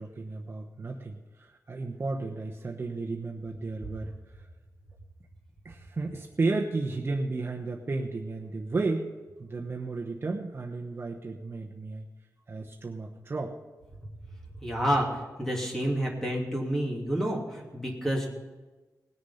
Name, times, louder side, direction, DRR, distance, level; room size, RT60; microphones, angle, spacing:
voice 1, 0.0-4.5 5.6-9.1 9.4-12.1 12.5-13.5, right 3 dB, 35° right, 0 dB, 1.0 m, -33 dB
voice 2, 14.6-18.3, equal, 5° left, -3 dB, 2.8 m, -29 dB
19.5 x 6.9 x 5.7 m, 1.2 s
wide cardioid pair, 155°, 7 cm